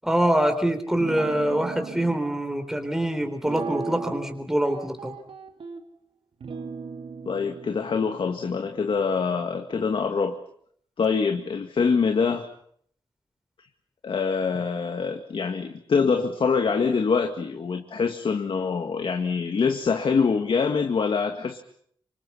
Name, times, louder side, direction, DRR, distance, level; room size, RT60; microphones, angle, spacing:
voice 1, 0.0-5.1, right 1 dB, 5° right, 6 dB, 3.6 m, -24 dB
Guitar, 1.0-2.2 3.4-4.4 4.6-5.8 6.4-9.9, right 4 dB, 85° right, 2.8 m, -37 dB
voice 2, 7.3-10.4 11.0-12.5 14.0-21.6, left 5 dB, 70° left, 5 dB, 2.0 m, -25 dB
29.5 x 26.5 x 5.7 m, 0.64 s
wide cardioid pair, 130°, 9 cm